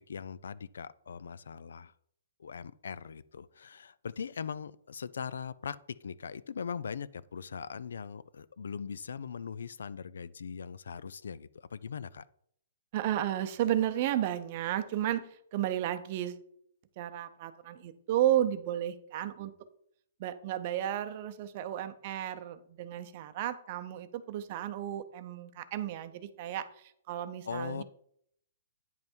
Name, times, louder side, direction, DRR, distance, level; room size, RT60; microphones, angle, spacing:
voice 1, 0.1-1.9 2.4-12.2 27.4-27.8, left 6 dB, 90° left, 0.4 m, -40 dB
voice 2, 12.9-15.2 15.5-16.4 17.0-19.5 20.2-26.7 27.1-27.8, right 12 dB, 30° right, 0.6 m, -33 dB
9.4 x 5.4 x 4.5 m
hypercardioid pair, 170°, 0 cm